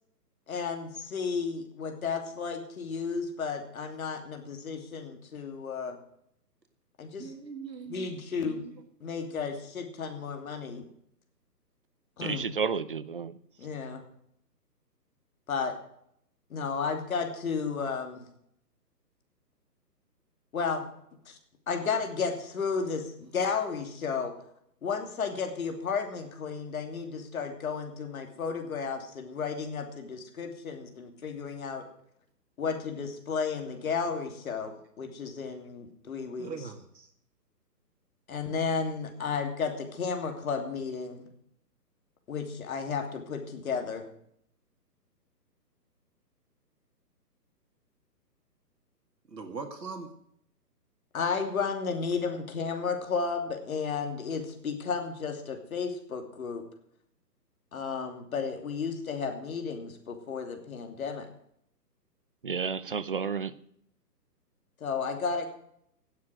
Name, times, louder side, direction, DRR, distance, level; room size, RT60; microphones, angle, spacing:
voice 1, 0.5-6.0 7.0-7.3 7.9-8.6 9.0-10.9 12.2-12.5 13.6-14.1 15.5-15.7 16.5-18.2 20.5-20.9 21.3-21.4 21.7-24.3 24.8-31.8 32.6-36.5 38.3-41.3 42.3-44.1 51.1-56.6 57.7-61.3 64.8-65.5, left 5 dB, 55° left, 3.0 m, -33 dB
voice 2, 7.2-8.8 36.4-37.1 49.3-50.1, right 5 dB, 80° right, 2.1 m, -41 dB
voice 3, 12.2-13.4 62.4-63.5, right 6 dB, 35° right, 0.5 m, -31 dB
17.0 x 7.4 x 6.3 m
hypercardioid pair, 145°, 49 cm